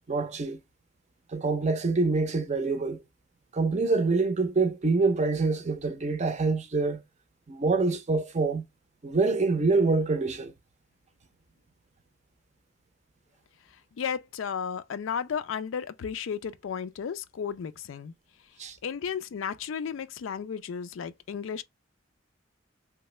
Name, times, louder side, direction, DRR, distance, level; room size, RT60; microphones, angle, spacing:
voice 1, 0.1-0.6 1.3-3.0 3.5-7.0 7.5-8.6 9.0-10.5 18.6-18.8, right 3 dB, 35° right, 0.5 m, -26 dB
voice 2, 14.0-18.1 18.8-21.6, left 7 dB, 85° left, 0.4 m, -33 dB
3.2 x 2.1 x 3.1 m
head